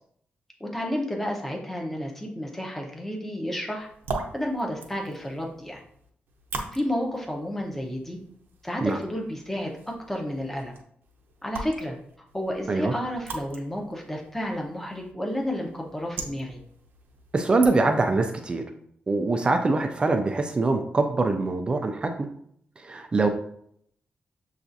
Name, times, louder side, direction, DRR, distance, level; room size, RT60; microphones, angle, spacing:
voice 1, 0.6-3.9 4.3-5.8 6.7-8.2 8.6-9.7 10.1-10.7 11.4-12.0 12.3-16.6, equal, 10° left, 0 dB, 0.7 m, -31 dB
sound 1, 3.8-18.2, right 3 dB, 85° right, 0.7 m, -41 dB
voice 2, 17.3-18.6 19.1-22.3 22.8-23.3, right 3 dB, 25° right, 5 dB, 0.3 m, -23 dB
6.9 x 2.4 x 2.6 m, 0.67 s
wide cardioid pair, 150°, 4 cm